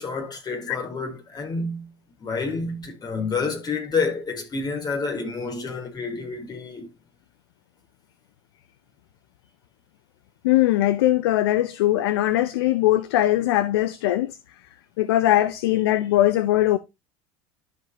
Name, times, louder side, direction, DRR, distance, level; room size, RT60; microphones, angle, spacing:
voice 1, 0.0-1.9 2.2-6.9, left 4 dB, 30° left, 4.3 m, -29 dB
voice 2, 10.4-14.4 15.0-16.8, left 14 dB, 75° left, 0.6 m, -20 dB
12.5 x 5.1 x 2.9 m
hypercardioid pair, 75°, 13 cm